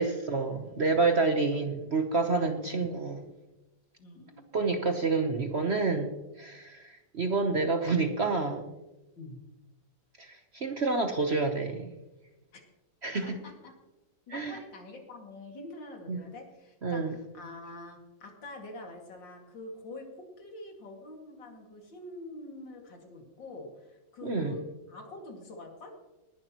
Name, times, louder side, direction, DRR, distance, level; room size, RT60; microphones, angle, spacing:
voice 1, 0.0-3.2 4.5-6.1 6.4-8.7 10.2-11.9 13.0-13.4 14.3-14.6 16.1-16.2 16.8-17.2 24.2-24.5, right 3 dB, 45° right, 5 dB, 1.0 m, -28 dB
voice 2, 4.0-4.5 9.2-9.4 12.5-12.6 13.2-13.7 14.3-25.9, left 2 dB, 75° left, 1 dB, 3.0 m, -45 dB
19.5 x 11.0 x 3.0 m, 1.0 s
omnidirectional pair, 2.0 m